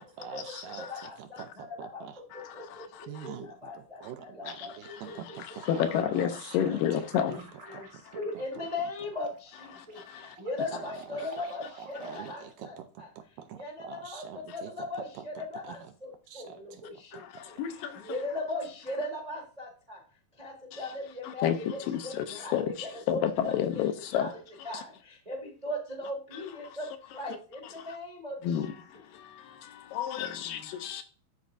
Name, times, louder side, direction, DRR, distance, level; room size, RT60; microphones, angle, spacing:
voice 1, 0.0-2.2 3.1-5.6 6.2-7.0 7.7-7.8 10.7-11.2 11.8-14.7 15.2-15.3 15.6-15.9 16.3-16.8 17.1-17.4, right 8 dB, 80° right, 7 dB, 2.0 m, -45 dB
voice 2, 0.8-2.0 2.3-5.2 5.5-5.6 6.9-7.9 8.1-13.1 13.5-20.0 20.4-23.8 24.1-24.3 24.6-28.7, left 2 dB, 30° right, 0 dB, 0.7 m, -39 dB
sound 1, 5.5-12.8, right 3 dB, 50° right, 1.0 m, -51 dB
voice 3, 5.8-7.3 17.6-17.7 21.4-21.6 22.5-22.6 23.1-24.3 28.5-28.6 30.0-31.0, left 10 dB, 80° left, 8 dB, 2.2 m, -28 dB
12.5 x 4.4 x 2.5 m, 0.38 s
omnidirectional pair, 4.2 m